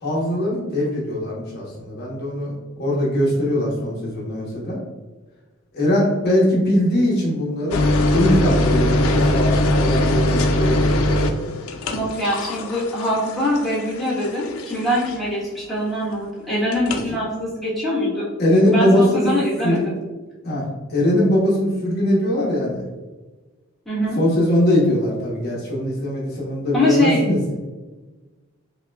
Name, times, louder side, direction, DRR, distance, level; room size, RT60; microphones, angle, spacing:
voice 1, 0.0-2.5 2.8-4.8 5.7-11.2 18.4-19.3 19.6-19.9 20.4-22.8 24.2-27.4, left 1 dB, 50° left, -5 dB, 1.0 m, -21 dB
sound 1, 7.7-15.4 16.7-17.1, left 1 dB, 85° left, 0.4 m, -21 dB
voice 2, 11.9-18.3 18.6-19.9 23.9-24.2 26.7-27.2, left 1 dB, ahead, -9 dB, 1.1 m, -23 dB
5.5 x 2.2 x 2.3 m, 1.2 s
head